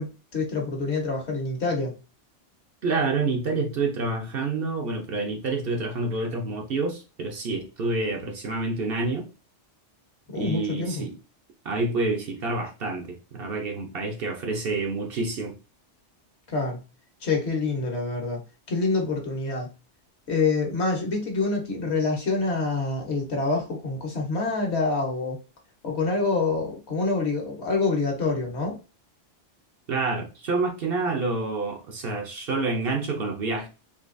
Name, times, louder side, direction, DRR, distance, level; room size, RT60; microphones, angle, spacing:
voice 1, 0.0-1.9 10.3-11.1 16.5-16.8 17.2-18.4 18.7-19.7 20.3-25.4 25.8-28.7, left 3 dB, 65° left, 1.3 m, -26 dB
voice 2, 2.8-9.3 10.3-11.1 11.6-15.6 29.9-33.7, right 3 dB, 55° right, 0.8 m, -28 dB
3.8 x 2.8 x 2.5 m
omnidirectional pair, 1.2 m